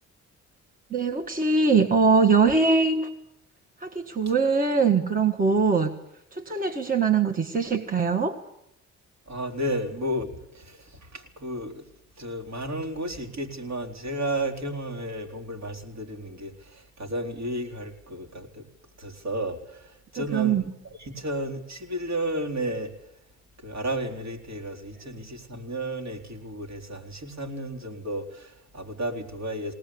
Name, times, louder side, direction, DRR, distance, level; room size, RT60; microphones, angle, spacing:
voice 1, 0.9-3.1 3.8-5.9 6.3-8.4 20.2-20.6, right 4 dB, 30° right, 4 dB, 1.9 m, -22 dB
voice 2, 9.3-11.9 12.2-18.7 19.0-20.7 21.0-22.9 23.6-29.7, right 1 dB, 65° right, 1 dB, 4.2 m, -33 dB
20.0 x 19.0 x 8.7 m, 0.82 s
cardioid pair, 90°, 30 cm